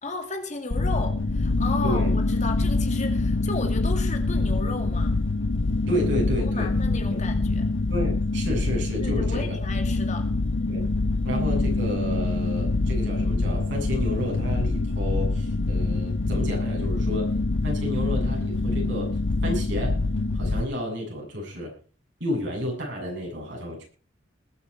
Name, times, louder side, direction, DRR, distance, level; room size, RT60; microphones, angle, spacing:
voice 1, 0.0-5.2 6.3-7.7 9.0-10.3, left 3 dB, 40° left, 2.3 m, -34 dB
sound 1, 0.7-20.6, left 2 dB, 80° left, 0.8 m, -25 dB
voice 2, 1.8-2.1 5.9-6.7 7.9-9.6 10.7-10.9 11.2-17.4 17.6-19.2 19.4-20.0 20.3-21.7 22.2-23.9, equal, 65° right, 7.6 m, -31 dB
21.0 x 8.6 x 4.4 m
head